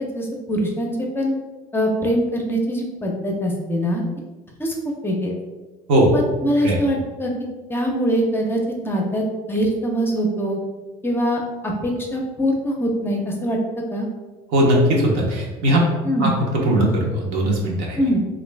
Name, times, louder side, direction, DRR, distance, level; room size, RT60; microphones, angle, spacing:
voice 1, 0.0-1.3 1.7-4.0 4.6-4.7 5.0-5.3 6.1-7.3 7.7-10.6 11.0-13.6 13.9-14.1 16.0-16.3 18.0-18.2, equal, 15° left, 0 dB, 0.6 m, -23 dB
voice 2, 14.5-15.8 16.2-18.0, right 1 dB, 75° right, -2 dB, 0.9 m, -19 dB
3.1 x 2.5 x 3.3 m, 1.2 s
cardioid pair, 120°, 15 cm